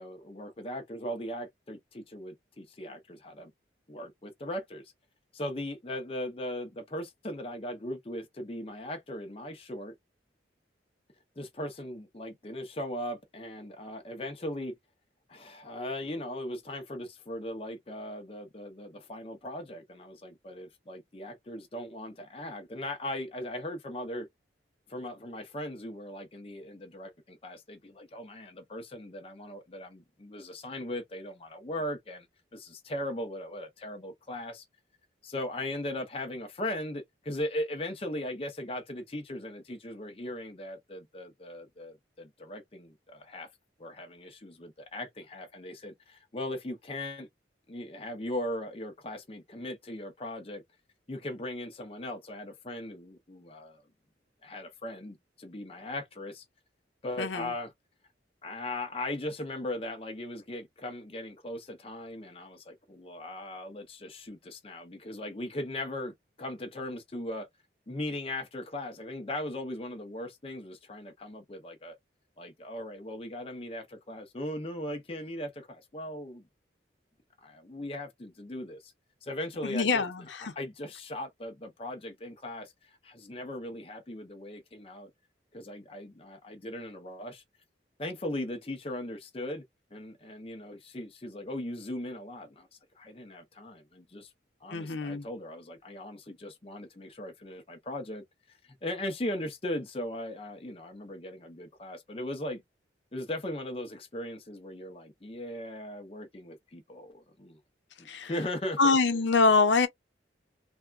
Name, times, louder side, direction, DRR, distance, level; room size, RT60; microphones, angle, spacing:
voice 1, 0.0-3.5 3.9-4.8 5.3-9.9 11.4-14.7 15.3-24.3 24.9-32.3 32.5-34.6 35.2-43.5 43.8-47.3 47.7-50.6 51.1-53.8 54.4-56.4 57.0-57.7 58.4-67.5 67.9-72.0 72.4-76.5 77.4-78.9 79.2-80.3 80.6-85.1 85.5-87.4 88.0-89.6 89.9-92.7 93.0-94.3 94.6-98.2 98.6-102.6 103.1-107.6 108.0-109.0, left 1 dB, 30° left, 0.6 m, -38 dB
voice 2, 57.2-57.5 79.6-80.5 94.7-95.2 108.1-108.3 108.8-109.9, left 4 dB, 80° left, 0.7 m, -25 dB
3.4 x 2.2 x 2.4 m
head